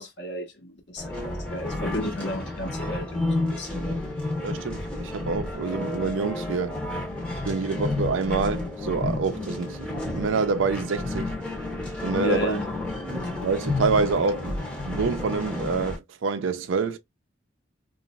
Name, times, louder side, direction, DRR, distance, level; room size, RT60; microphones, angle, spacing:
voice 1, 0.0-4.0 12.2-12.7 13.2-13.3, left 1 dB, 65° left, 1.0 m, -33 dB
sound 1, 1.0-16.0, left 2 dB, 5° left, 0.7 m, -31 dB
voice 2, 4.4-6.8 7.4-11.3 12.0-12.6 13.1-17.0, right 4 dB, 90° right, 0.4 m, -27 dB
3.0 x 2.4 x 2.2 m
head